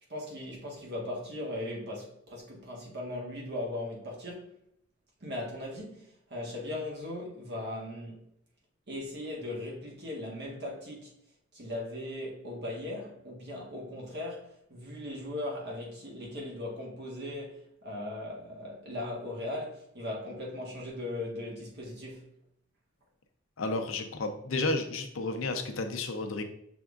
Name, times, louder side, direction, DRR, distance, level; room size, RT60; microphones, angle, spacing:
voice 1, 0.1-4.5 5.2-8.2 8.9-11.1 11.5-22.2, left 1 dB, 55° right, 1.4 m, -38 dB
voice 2, 23.6-26.4, left 2 dB, 80° left, 0.6 m, -32 dB
6.0 x 3.5 x 2.5 m
head